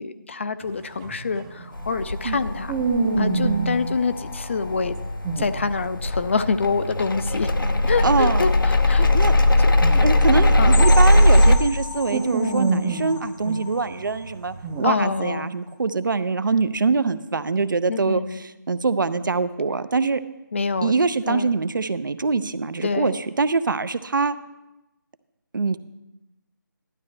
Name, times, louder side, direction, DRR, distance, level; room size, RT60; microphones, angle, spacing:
voice 1, 0.0-2.7 3.2-5.0 5.4-7.5 7.9-9.1 9.6-9.7 10.6-10.8 11.5-11.6 14.8-15.5 17.9-18.4 20.5-20.9 21.3-21.6 22.8-23.2, left 4 dB, 35° left, 12 dB, 0.4 m, -26 dB
sound 1, 0.6-3.9 4.9-6.0 6.3-11.4 11.8-14.9, right 3 dB, 10° right, 0.6 m, -28 dB
sound 2, 1.8-11.6, left 1 dB, 80° left, 0.9 m, -19 dB
voice 2, 8.0-8.5 9.0-9.3 10.0-20.2 20.8-24.4 25.5-25.8, right 4 dB, 70° right, 13 dB, 0.6 m, -24 dB
sound 3, 10.7-14.3 14.7-14.9 15.3-15.4 15.8-15.9, left 5 dB, 20° left, 0.8 m, -34 dB
11.5 x 11.5 x 3.3 m, 0.98 s
figure-of-eight pair, 165°, 11 cm